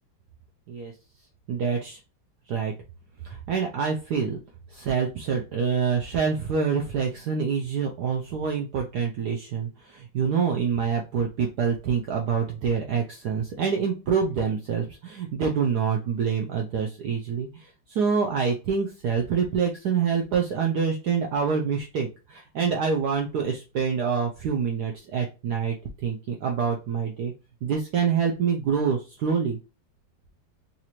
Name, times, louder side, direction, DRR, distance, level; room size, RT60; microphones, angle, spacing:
voice 1, 1.5-2.0 2.5-2.7 3.2-4.4 4.7-25.7 26.0-27.3 27.6-29.6, right 6 dB, 70° right, 2 dB, 1.0 m, -26 dB
4.1 x 2.6 x 2.9 m, 0.31 s
omnidirectional pair, 2.2 m